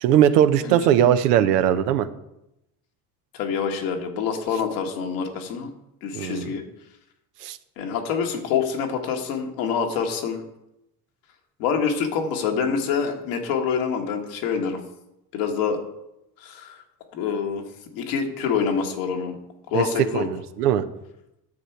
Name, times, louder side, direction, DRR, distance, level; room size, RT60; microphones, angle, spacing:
voice 1, 0.0-2.1 6.1-6.5 7.4-7.6 19.7-19.9 20.1-20.8, right 10 dB, 85° right, 11 dB, 0.8 m, -19 dB
voice 2, 3.3-5.7 6.0-6.6 7.8-10.4 11.6-14.8 15.3-15.8 16.4-16.8 17.1-17.6 17.9-19.4 19.7-20.3, left 6 dB, 75° left, 3 dB, 1.6 m, -26 dB
9.6 x 6.8 x 4.5 m, 0.85 s
hypercardioid pair, 60°, 46 cm